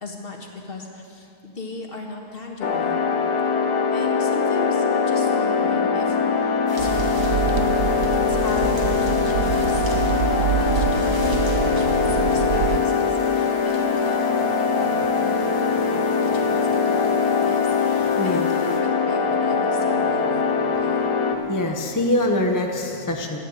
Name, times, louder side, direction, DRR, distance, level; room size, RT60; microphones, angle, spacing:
voice 1, 0.0-3.0 3.5-7.0 7.6-9.9 10.3-16.0 16.3-21.0, left 2 dB, 35° left, 0 dB, 1.8 m, -37 dB
sound 1, 2.6-21.4, left 5 dB, 80° left, 1.5 m, -22 dB
sound 2, 6.7-18.8, equal, 15° right, 1.9 m, -44 dB
sound 3, 6.8-12.8, right 9 dB, 85° right, 1.3 m, -26 dB
voice 2, 18.2-18.5 21.4-23.4, left 1 dB, 20° left, 2 dB, 0.5 m, -23 dB
13.5 x 10.0 x 7.9 m, 2.5 s
omnidirectional pair, 1.7 m